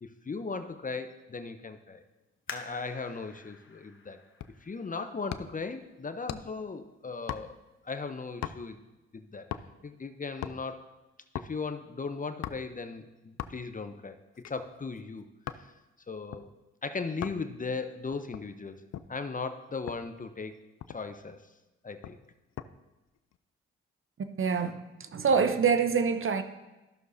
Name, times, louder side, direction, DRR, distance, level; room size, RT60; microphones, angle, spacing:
voice 1, 0.0-2.0 2.5-4.2 4.6-7.6 7.8-8.8 9.1-9.5 9.8-10.8 11.4-14.2 14.5-15.3 15.6-15.7 16.1-16.5 16.8-18.8 19.1-20.6 20.9-21.4 21.8-22.2, left 4 dB, 30° left, 0.7 m, -37 dB
sound 1, 2.5-5.8 6.4-6.5 7.2-7.5 7.9-8.0, left 4 dB, 45° left, 1.0 m, -48 dB
sound 2, 4.4-4.7 5.3-5.7 6.3-6.7 7.3-7.8 8.4-8.8 9.5-9.9 10.2-10.6 11.4-11.6 12.4-12.8 13.4-13.8 14.3-15.7 16.3-16.5 17.2-17.5 18.1-19.2 19.9-20.1 20.5-20.6 20.8-21.2 22.0-22.7 23.1-23.4, left 10 dB, 60° left, 0.5 m, -40 dB
voice 2, 24.2-26.4, right 6 dB, 45° right, 0.7 m, -26 dB
13.5 x 6.3 x 2.7 m
supercardioid pair, 50°, 29 cm